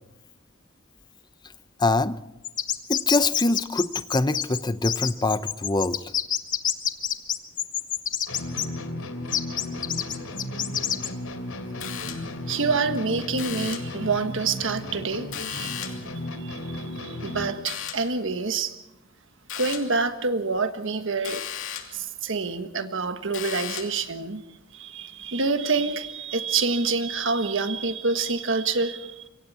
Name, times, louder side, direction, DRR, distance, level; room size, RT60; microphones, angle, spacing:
voice 1, 1.8-2.2 2.9-6.0, left 2 dB, 20° left, 13 dB, 0.7 m, -24 dB
sound 1, 2.4-8.6 9.3-11.1, left 9 dB, 40° left, 1.4 m, -27 dB
sound 2, 8.3-17.7, left 1 dB, 90° left, 3.6 m, -35 dB
sound 3, 11.8-12.5 13.4-14.0 15.3-16.1 17.7-18.2 19.5-20.0 21.2-22.0 23.3-24.1, left 9 dB, 70° left, 2.9 m, -36 dB
voice 2, 12.5-16.0 16.3-18.8 19.6-21.4 21.9-24.4 24.7-29.3, right 4 dB, 65° right, 8 dB, 1.5 m, -27 dB
27.0 x 24.0 x 4.3 m, 0.90 s
head